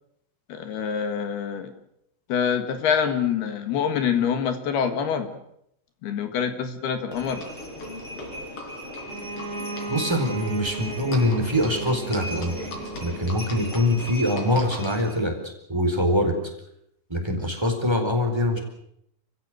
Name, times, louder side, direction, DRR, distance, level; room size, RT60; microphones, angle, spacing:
voice 1, 0.5-1.7 2.3-5.3 6.0-7.4, left 7 dB, 65° left, 8 dB, 3.3 m, -25 dB
Livestock farm animals working animals, 7.1-15.2, left 1 dB, 30° left, 4.8 m, -37 dB
Bowed string instrument, 9.0-13.7, right 4 dB, 35° right, 2.6 m, -37 dB
voice 2, 9.9-12.7 13.0-16.3 17.1-18.6, left 1 dB, 5° right, 3 dB, 3.5 m, -24 dB
29.5 x 15.5 x 7.9 m, 0.76 s
omnidirectional pair, 5.6 m